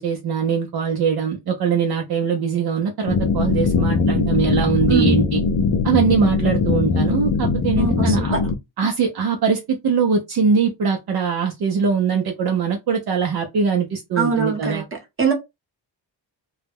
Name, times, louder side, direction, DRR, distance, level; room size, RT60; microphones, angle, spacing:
voice 1, 0.0-5.4 5.8-8.4 8.8-14.8, right 5 dB, 55° right, 0.5 m, -21 dB
sound 1, 3.1-8.5, left 4 dB, 45° left, 0.5 m, -20 dB
voice 2, 7.8-8.2 14.2-14.8 15.2-15.3, right 6 dB, 25° right, 0.9 m, -21 dB
2.2 x 2.1 x 3.3 m
wide cardioid pair, 135°, 46 cm